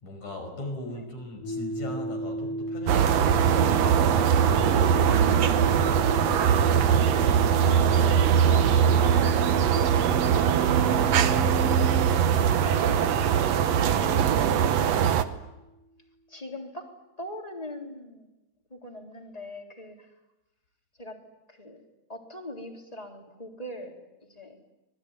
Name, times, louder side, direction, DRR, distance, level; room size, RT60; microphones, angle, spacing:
voice 1, 0.0-4.0 4.6-5.9 6.7-10.0, left 2 dB, 65° left, 4 dB, 7.0 m, -40 dB
sound 1, 1.4-15.4, right 1 dB, 85° left, 9.3 m, -36 dB
sound 2, 2.9-15.2, right 8 dB, 65° right, 2.1 m, -21 dB
voice 2, 12.6-13.3 16.3-16.9 17.2-18.3 18.7-20.1 20.9-21.2 21.5-21.8 22.1-24.6, left 1 dB, 10° left, 2 dB, 3.5 m, -41 dB
26.0 x 20.5 x 9.7 m, 0.97 s
omnidirectional pair, 3.6 m